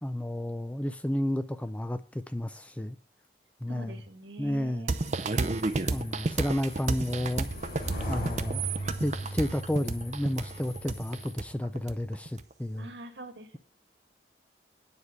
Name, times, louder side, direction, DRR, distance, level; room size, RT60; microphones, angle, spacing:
voice 1, 0.0-3.0 3.6-4.0 4.4-4.9 5.9-7.5 8.1-8.6 9.0-12.9, left 1 dB, 5° left, 0.4 m, -31 dB
voice 2, 3.7-4.9 12.8-13.6, right 1 dB, 80° right, 1.8 m, -44 dB
sound 1, 4.9-12.4, right 3 dB, 40° right, 0.6 m, -31 dB
sound 2, 5.0-11.3, right 1 dB, 50° left, 5.6 m, -39 dB
9.7 x 4.9 x 8.0 m
head